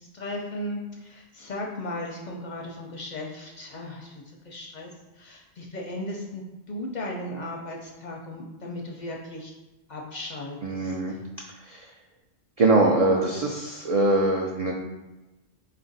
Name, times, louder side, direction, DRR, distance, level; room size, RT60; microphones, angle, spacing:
voice 1, 0.1-4.9 5.2-9.5 9.9-11.2, left 1 dB, 55° left, -1 dB, 0.5 m, -36 dB
voice 2, 10.6-11.1 11.6-11.8 12.6-14.7, right 2 dB, 70° right, -1 dB, 0.3 m, -22 dB
4.1 x 2.5 x 3.9 m, 1.1 s
omnidirectional pair, 1.2 m